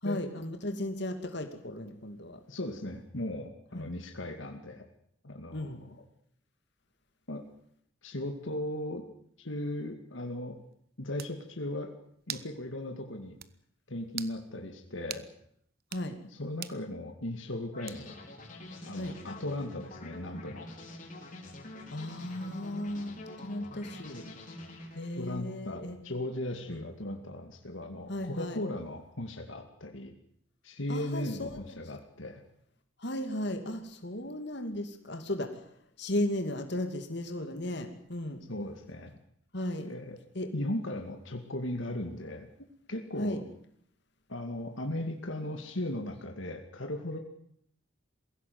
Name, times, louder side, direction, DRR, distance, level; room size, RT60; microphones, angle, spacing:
voice 1, 0.0-2.4 3.7-3.9 5.5-5.8 15.9-16.2 18.9-19.2 21.9-24.2 24.9-26.0 26.7-26.8 28.1-28.6 30.9-31.8 33.0-35.6 36.0-38.4 39.5-39.9 40.3-40.5 43.2-43.4, left 1 dB, 60° left, 6 dB, 2.7 m, -35 dB
voice 2, 2.5-4.9 5.2-6.0 7.3-7.4 8.0-9.0 9.4-10.6 11.0-11.9 12.3-13.4 13.9-15.3 16.3-18.2 18.8-20.7 25.2-30.1 30.6-32.4 38.5-39.1 39.8-40.2 40.5-42.5 42.9-43.4 44.3-47.2, left 1 dB, 75° left, 4 dB, 2.4 m, -37 dB
sound 1, 10.7-10.8 11.2-11.4 12.3-12.5 12.9-13.0 13.4-13.5 14.1-14.4 15.1-15.3 15.8-16.1 16.6-16.8 17.9-18.2, right 11 dB, 50° right, 1.0 m, -41 dB
sound 2, 17.7-25.4, left 1 dB, 40° left, 4.6 m, -46 dB
22.5 x 16.5 x 9.5 m, 0.67 s
head